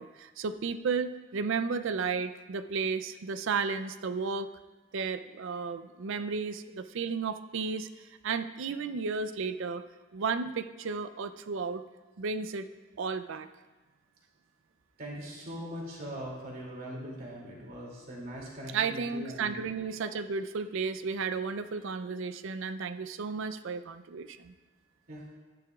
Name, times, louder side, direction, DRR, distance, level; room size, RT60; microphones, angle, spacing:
voice 1, 0.0-4.5 4.9-7.9 8.2-9.8 10.1-11.8 12.2-12.7 13.0-13.5 18.7-24.5, right 5 dB, 60° right, 12 dB, 0.4 m, -33 dB
voice 2, 15.0-19.6 20.0-20.1 25.1-25.2, equal, 45° right, -4 dB, 2.6 m, -41 dB
13.0 x 10.5 x 2.4 m, 1.2 s
head